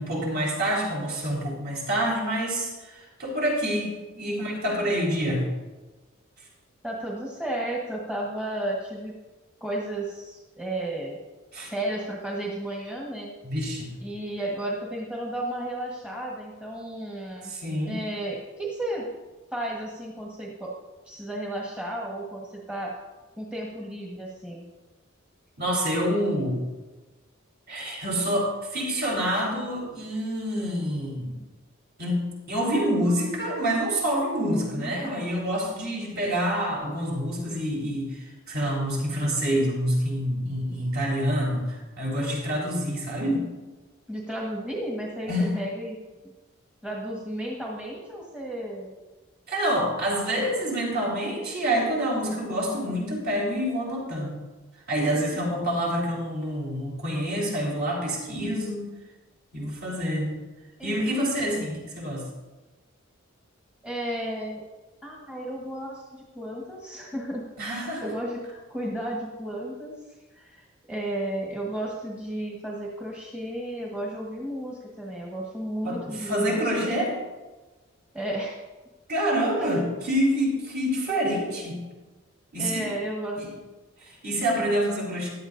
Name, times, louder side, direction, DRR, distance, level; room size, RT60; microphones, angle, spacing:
voice 1, 0.0-5.4 11.5-11.7 13.4-13.9 17.5-18.0 25.6-26.6 27.7-31.4 32.0-43.5 45.3-45.5 49.5-54.4 54.9-58.9 59.5-60.4 60.8-62.2 67.6-68.1 75.8-77.2 79.1-81.8 82.5-82.9 83.4-83.5 84.0-85.3, equal, 50° right, -3 dB, 3.8 m, -27 dB
voice 2, 6.8-9.1 9.6-11.2 11.6-13.3 14.0-17.5 17.9-19.1 19.5-20.7 21.0-22.9 23.4-24.6 34.5-35.0 44.1-46.0 46.8-49.0 55.3-55.5 60.8-61.0 61.4-61.5 63.8-64.6 65.0-67.4 67.7-68.4 68.7-70.0 70.3-76.9 78.1-78.6 79.6-79.7 82.6-83.4, right 1 dB, 5° right, -3 dB, 1.3 m, -33 dB
15.5 x 10.5 x 2.6 m, 1.2 s
head